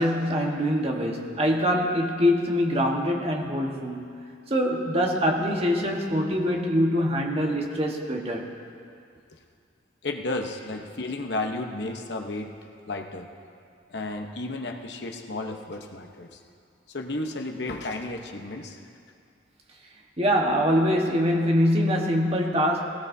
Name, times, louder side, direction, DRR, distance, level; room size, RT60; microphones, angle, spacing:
voice 1, 0.0-8.5 20.2-22.9, equal, 35° right, 1 dB, 1.4 m, -24 dB
voice 2, 10.0-12.5 12.9-13.3 13.9-16.4 16.9-18.8, left 2 dB, 65° left, 3 dB, 1.0 m, -33 dB
20.0 x 17.5 x 2.7 m, 2.4 s
head